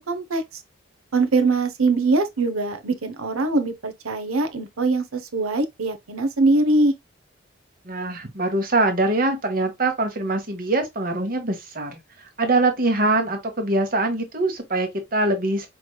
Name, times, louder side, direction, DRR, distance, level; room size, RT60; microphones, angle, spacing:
voice 1, 0.1-0.4 1.1-6.9, right 3 dB, 85° right, 0.8 m, -22 dB
voice 2, 7.8-12.0 12.4-15.7, right 2 dB, 45° right, 1.0 m, -23 dB
5.0 x 3.2 x 2.3 m
head